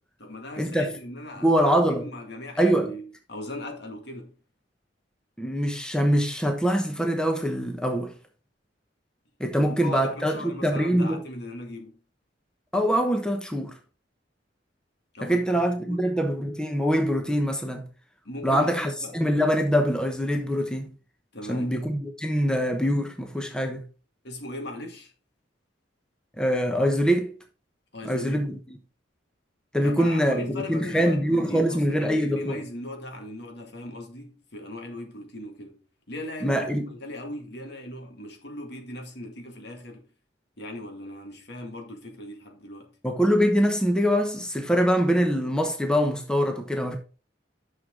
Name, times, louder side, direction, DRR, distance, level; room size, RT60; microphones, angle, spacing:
voice 1, 0.2-4.4 9.7-12.0 15.1-16.0 18.2-19.1 21.3-21.8 24.2-25.1 27.9-28.5 29.8-35.8 36.1-40.1 40.6-43.0, left 1 dB, 65° left, 2.1 m, -39 dB
voice 2, 1.4-2.0 2.6-2.9 5.4-8.1 9.4-11.2 12.7-13.7 15.2-17.8 18.4-20.9 21.5-23.8 26.4-27.4 28.0-28.6 29.7-32.6 36.4-36.9 43.0-47.0, equal, 5° left, 1.0 m, -24 dB
9.6 x 6.4 x 3.8 m
head